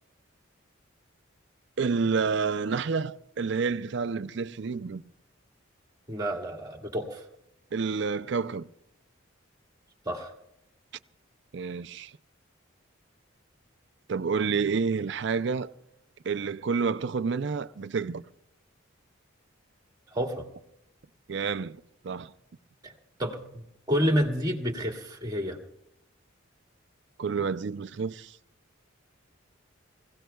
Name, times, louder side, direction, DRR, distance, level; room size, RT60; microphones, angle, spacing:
voice 1, 1.8-5.0 7.7-8.7 11.5-12.1 14.1-15.7 16.2-18.2 21.3-22.3 27.2-28.4, right 5 dB, 60° right, 0.5 m, -29 dB
voice 2, 6.1-7.2 10.0-10.3 20.1-20.5 22.8-22.9 23.2-25.6, equal, 20° right, 1.9 m, -29 dB
27.5 x 17.0 x 2.3 m
head